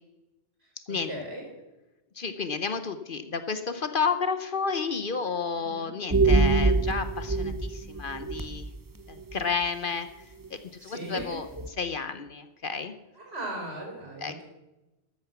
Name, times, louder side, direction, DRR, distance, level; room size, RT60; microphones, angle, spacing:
voice 1, 0.9-1.5 5.6-5.9 10.8-11.4 13.1-14.4, right 1 dB, 65° right, 0 dB, 4.8 m, -38 dB
voice 2, 2.2-8.6 9.1-10.1 10.5-11.5 11.8-12.9 14.2-14.4, left 5 dB, 55° left, 9 dB, 1.0 m, -31 dB
sound 1, 6.1-8.8 9.2-9.4 10.5-10.6 11.2-11.3 11.6-11.7, right 3 dB, 20° right, 0.7 m, -24 dB
13.5 x 8.9 x 7.2 m, 1.0 s
omnidirectional pair, 1.1 m